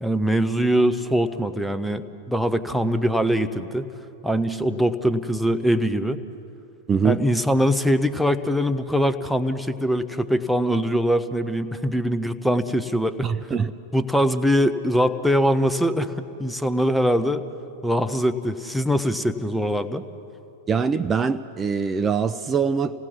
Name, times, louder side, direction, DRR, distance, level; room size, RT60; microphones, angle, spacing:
voice 1, 0.0-3.9 4.2-6.2 7.0-13.3 13.9-17.4 17.8-20.0, equal, ahead, 9 dB, 0.9 m, -22 dB
voice 2, 6.9-7.2 13.2-13.7 20.7-23.0, right 6 dB, 20° right, 10 dB, 0.5 m, -23 dB
28.5 x 17.5 x 6.1 m, 2.7 s
figure-of-eight pair, 90°, 0 cm